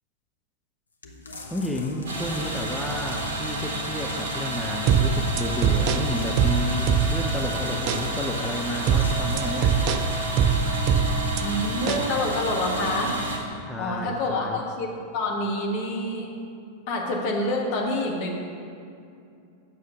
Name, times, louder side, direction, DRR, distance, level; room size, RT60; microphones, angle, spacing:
sound 1, 1.0-4.0 6.0-10.2 10.8-10.9, left 2 dB, 75° left, 0.8 m, -43 dB
voice 1, 1.5-9.7 13.7-14.6, left 1 dB, 5° left, 1 dB, 0.6 m, -31 dB
sound 2, 2.1-13.4, right 1 dB, 60° right, 1.6 m, -30 dB
sound 3, 4.9-7.4 7.9-8.1 8.9-11.4 11.9-12.1, right 7 dB, 40° right, 0.4 m, -22 dB
voice 2, 11.4-13.2 13.8-16.3 16.9-18.4, left 1 dB, 45° left, -1 dB, 1.6 m, -27 dB
8.5 x 6.4 x 5.4 m, 2.5 s
figure-of-eight pair, 90°, 0 cm